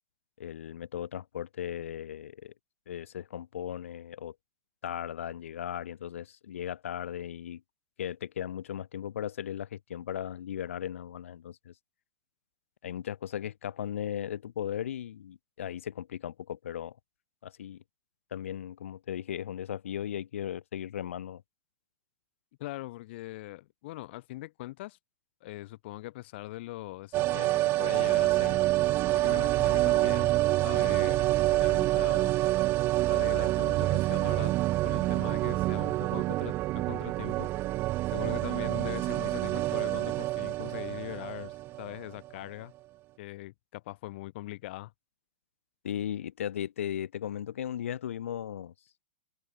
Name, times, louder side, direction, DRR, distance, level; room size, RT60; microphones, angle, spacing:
voice 1, 0.4-2.5 2.9-4.3 4.8-7.6 8.0-11.7 12.8-16.9 17.4-17.8 18.3-21.4 45.8-48.7, left 10 dB, 80° left, 6.6 m, -37 dB
voice 2, 22.6-25.0 25.4-28.6 29.1-32.4 33.1-34.5 34.8-37.5 38.1-42.7 43.2-44.9, left 18 dB, 60° left, 4.8 m, -41 dB
sound 1, 27.1-42.0 42.3-42.4, right 17 dB, 35° right, 0.5 m, -27 dB
hypercardioid pair, 125°, 7 cm